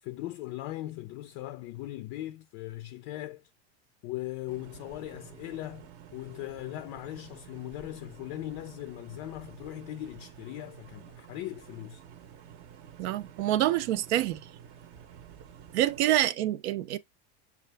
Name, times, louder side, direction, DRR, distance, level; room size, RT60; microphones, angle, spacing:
voice 1, 0.0-3.5 4.0-12.0, left 15 dB, 45° left, 0.4 m, -39 dB
sound 1, 4.5-16.1, right 9 dB, 45° right, 0.7 m, -50 dB
voice 2, 13.0-14.4 15.7-17.0, right 13 dB, 80° right, 0.7 m, -26 dB
6.6 x 2.3 x 3.3 m
supercardioid pair, 155°, 33 cm